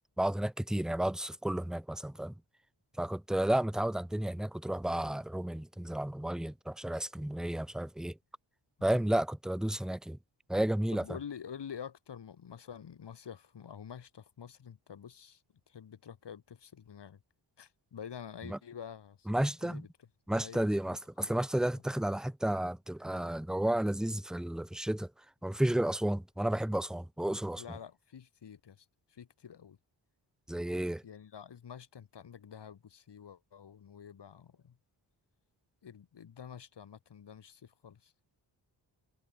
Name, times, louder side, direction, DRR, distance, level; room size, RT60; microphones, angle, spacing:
voice 1, 0.2-2.3 3.0-8.1 8.8-10.2 10.5-11.0 18.5-18.6 19.3-19.8 20.3-25.1 25.4-27.6 30.5-31.0, right 1 dB, ahead, 0.6 m, -32 dB
voice 2, 10.9-15.4 15.7-17.2 17.6-19.3 19.6-19.9 20.3-20.7 21.2-21.3 27.6-29.8 31.0-34.8 35.8-38.1, left 8 dB, 65° left, 5.2 m, -48 dB
cardioid pair, 80°, 44 cm